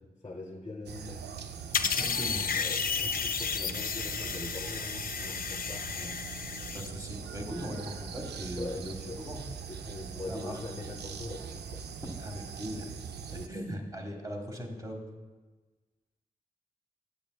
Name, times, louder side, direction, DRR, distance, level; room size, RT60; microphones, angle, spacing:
voice 1, 0.2-1.2 2.5-5.9 8.5-9.2 9.7-11.8 13.3-13.7, left 2 dB, 25° left, 1 dB, 0.7 m, -42 dB
sound 1, 0.9-13.5, right 6 dB, 85° right, 0.4 m, -42 dB
sound 2, 1.7-6.9, left 6 dB, 60° left, 0.4 m, -32 dB
voice 2, 1.8-2.4 6.0-6.1 6.7-9.5 10.3-10.6 12.2-12.9 13.5-15.0, equal, 20° right, 2 dB, 1.5 m, -39 dB
8.5 x 8.1 x 2.2 m, 1.3 s
cardioid pair, 40°, 17 cm